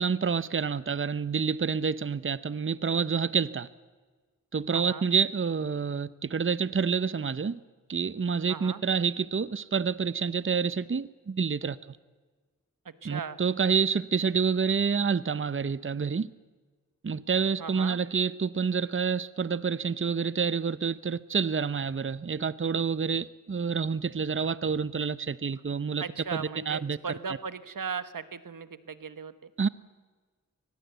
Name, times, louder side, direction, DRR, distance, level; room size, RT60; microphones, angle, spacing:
voice 1, 0.0-3.7 4.5-7.6 7.9-12.0 13.0-16.3 17.0-26.0 26.3-27.0 29.6-29.7, right 6 dB, 40° right, 0.7 m, -28 dB
voice 2, 4.7-5.0 8.5-8.8 12.8-13.4 17.6-18.0 26.0-29.5, right 6 dB, 80° right, 1.2 m, -37 dB
23.0 x 20.0 x 8.1 m
cardioid pair, 50°, 32 cm